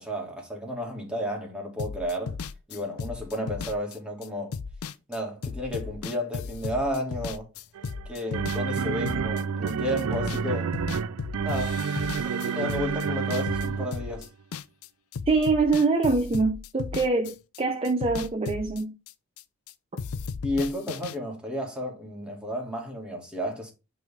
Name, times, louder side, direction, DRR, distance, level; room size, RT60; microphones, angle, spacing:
voice 1, 0.0-2.4 2.7-4.5 5.1-7.5 8.1-10.8 11.4-11.8 12.1-14.3 20.4-23.7, equal, 5° right, 2.0 m, -32 dB
sound 1, 1.8-10.5 10.7-14.9 15.1-19.7 20.0-21.1, left 5 dB, 70° left, 0.5 m, -36 dB
sound 2, 7.8-14.2, right 6 dB, 75° right, 0.4 m, -29 dB
voice 2, 15.3-18.9, right 3 dB, 25° right, 0.6 m, -24 dB
9.1 x 3.5 x 3.5 m
head